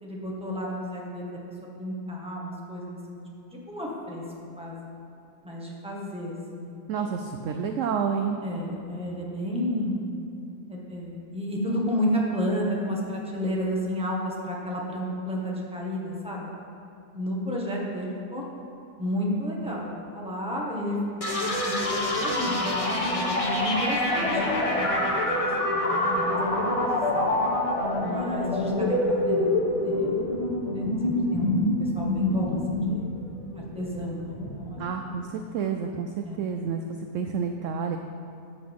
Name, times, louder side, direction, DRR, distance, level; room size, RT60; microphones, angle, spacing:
voice 1, 0.0-1.4 1.8-3.2 3.5-4.2 4.6-4.9 5.4-6.8 8.4-10.1 10.7-16.5 17.1-18.4 19.0-27.3 28.0-30.1 30.7-33.1 33.5-35.1 36.2-36.4, equal, 5° right, -4 dB, 1.5 m, -32 dB
voice 2, 6.9-8.4 34.8-36.8 37.1-38.0, right 6 dB, 70° right, 5 dB, 0.7 m, -29 dB
sound 1, 21.2-34.8, left 1 dB, 25° left, 1.0 m, -26 dB
13.5 x 8.0 x 3.6 m, 2.8 s
omnidirectional pair, 1.8 m